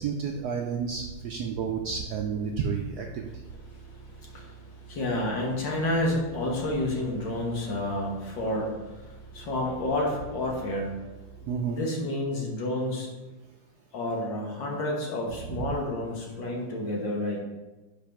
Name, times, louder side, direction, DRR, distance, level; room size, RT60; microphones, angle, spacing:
voice 1, 0.0-3.3 11.5-11.8 15.5-15.7, right 6 dB, 80° right, 2 dB, 0.8 m, -31 dB
sound 1, 0.7-11.6, right 5 dB, ahead, 1.3 m, -47 dB
voice 2, 3.7-11.0 11.6-13.1 13.9-17.4, left 1 dB, 60° left, -1 dB, 1.8 m, -30 dB
5.4 x 5.1 x 5.8 m, 1.1 s
omnidirectional pair, 2.3 m